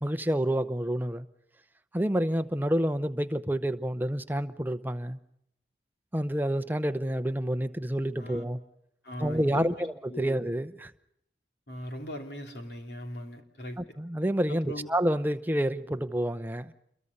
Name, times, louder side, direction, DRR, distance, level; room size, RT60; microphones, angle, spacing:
voice 1, 0.0-1.3 1.9-5.2 6.1-8.6 9.2-10.9 13.8-16.7, right 1 dB, 10° right, 0.8 m, -28 dB
voice 2, 9.0-9.7 10.1-10.3 11.7-13.8 14.5-14.9, equal, 60° left, 3.2 m, -39 dB
28.0 x 23.0 x 5.4 m
head